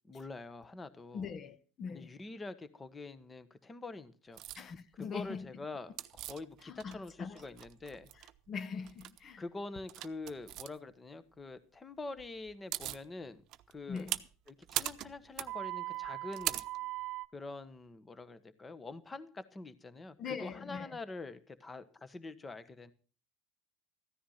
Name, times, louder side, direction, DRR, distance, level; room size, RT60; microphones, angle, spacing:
voice 1, 0.0-1.3 1.9-4.4 5.0-8.1 9.4-13.4 13.7-14.1 14.5-16.6 17.3-22.9, left 3 dB, 20° left, 1.3 m, -45 dB
voice 2, 1.1-2.1 4.5-5.5 6.6-7.4 8.1-9.4 13.9-14.2 20.2-21.0, left 6 dB, 40° left, 1.1 m, -42 dB
sound 1, 4.4-4.6 6.0-7.1 7.4-8.3 8.8-9.2 9.9-10.7 12.2-12.3 12.5-13.0 13.5-17.3, right 15 dB, 55° right, 0.8 m, -39 dB
14.5 x 10.0 x 5.7 m
supercardioid pair, 100°, 0 cm